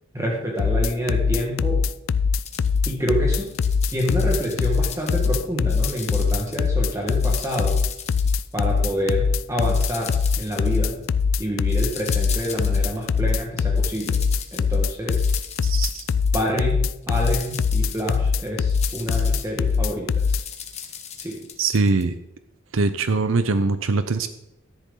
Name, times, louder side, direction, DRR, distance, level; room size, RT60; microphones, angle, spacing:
voice 1, 0.1-1.8 2.8-3.5 3.9-7.8 8.5-11.0 11.4-14.2 14.5-15.2 16.3-20.4 21.2-21.4, equal, 15° right, -2 dB, 1.5 m, -27 dB
sound 1, 0.6-20.4, left 5 dB, 80° left, 0.4 m, -21 dB
sound 2, 2.4-2.9 3.4-5.4 5.7-6.7 7.0-9.1 9.6-11.2 11.7-13.3 13.6-16.7 17.0-22.0, left 8 dB, 35° left, 1.2 m, -39 dB
voice 2, 15.6-16.0 21.6-22.2 22.7-24.3, right 3 dB, 90° right, 11 dB, 0.7 m, -22 dB
13.5 x 10.5 x 3.8 m, 0.87 s
head